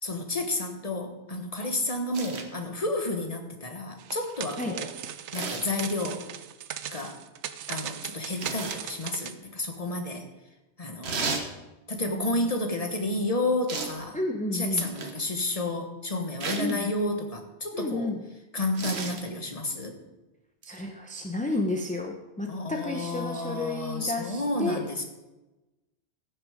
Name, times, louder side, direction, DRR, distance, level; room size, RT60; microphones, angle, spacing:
voice 1, 0.0-4.9 5.3-6.2 6.9-7.2 7.7-10.2 10.8-11.5 11.9-14.2 14.5-18.1 18.5-19.9 22.5-25.1, left 2 dB, 35° left, 4 dB, 1.4 m, -31 dB
sound 1, 2.1-2.5 5.3-5.8 8.4-8.8 11.0-11.5 13.7-14.0 14.8-15.2 16.4-16.7 18.7-19.2 20.6-20.8, right 4 dB, 70° right, 1.4 m, -33 dB
sound 2, 4.0-9.3, right 10 dB, 85° right, 0.9 m, -38 dB
voice 2, 12.0-12.3 14.1-14.9 16.6-16.9 17.7-18.2 20.6-24.8, left 2 dB, 10° left, 2 dB, 0.7 m, -31 dB
15.0 x 6.7 x 5.0 m, 1.1 s
omnidirectional pair, 1.2 m